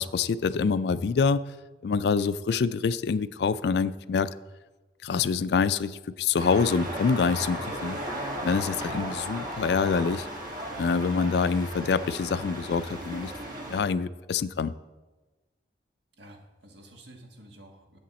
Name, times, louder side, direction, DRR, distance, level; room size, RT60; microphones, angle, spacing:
voice 1, 0.0-1.4 1.8-4.3 5.0-8.0 8.4-10.3 10.8-13.3 13.7-14.7, left 5 dB, 60° left, 15 dB, 0.3 m, -26 dB
sound 1, 6.4-13.8, right 1 dB, 50° right, 1.6 m, -36 dB
voice 2, 16.2-18.0, right 1 dB, 70° right, 2 dB, 1.5 m, -50 dB
10.5 x 7.9 x 4.2 m, 1.2 s
head